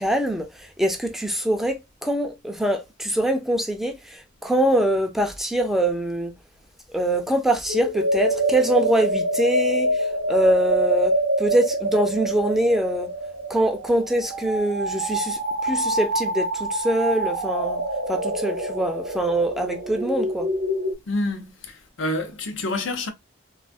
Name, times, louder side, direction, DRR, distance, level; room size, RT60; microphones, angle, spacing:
voice 1, 0.0-6.3 6.9-13.1 13.5-20.5, right 1 dB, ahead, 0.4 m, -24 dB
sound 1, 7.7-20.9, right 1 dB, 80° right, 0.7 m, -26 dB
voice 2, 21.1-23.1, left 2 dB, 80° left, 0.6 m, -28 dB
3.3 x 2.3 x 2.3 m
head